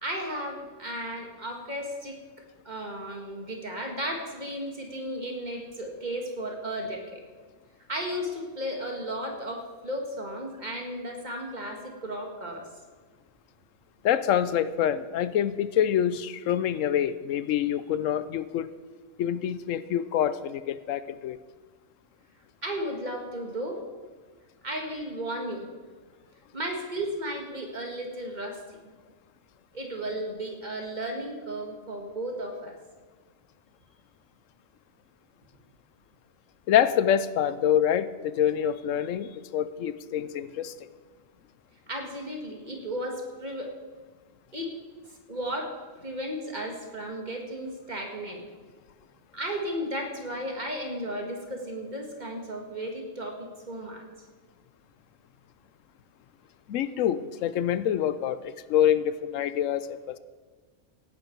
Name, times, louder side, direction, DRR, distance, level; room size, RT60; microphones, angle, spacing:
voice 1, 0.0-2.2 2.7-7.2 7.9-12.7 22.6-23.8 24.6-25.7 26.5-28.6 29.7-32.8 41.9-43.7 44.5-44.8 45.3-48.4 49.3-54.0, equal, 35° right, 2 dB, 2.0 m, -34 dB
voice 2, 14.0-18.7 19.2-21.4 36.7-40.7 56.7-60.2, left 10 dB, 85° left, 15 dB, 1.0 m, -26 dB
17.5 x 10.5 x 4.6 m, 1.4 s
omnidirectional pair, 1.3 m